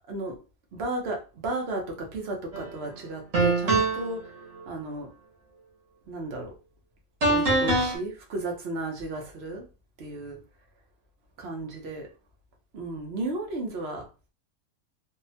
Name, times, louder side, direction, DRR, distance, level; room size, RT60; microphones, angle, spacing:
voice 1, 0.1-0.4 0.7-4.3 4.7-5.1 6.1-6.6 7.3-9.6 10.0-10.4 11.4-12.1 12.7-14.1, right 2 dB, 55° right, 1.1 m, -34 dB
sound 1, 2.5-2.7 3.3-4.1 7.2-8.0, right 2 dB, 85° right, 1.5 m, -23 dB
3.4 x 2.1 x 2.7 m
omnidirectional pair, 1.3 m